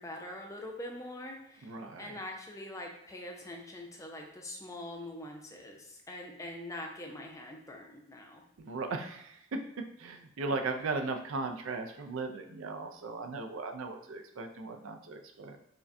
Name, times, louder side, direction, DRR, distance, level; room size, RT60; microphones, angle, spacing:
voice 1, 0.0-1.7 2.0-8.4, left 1 dB, 15° left, 1 dB, 0.4 m, -43 dB
voice 2, 1.6-2.2 8.6-9.6 10.0-15.6, right 3 dB, 70° right, 5 dB, 0.4 m, -37 dB
4.8 x 2.2 x 2.6 m, 0.79 s
head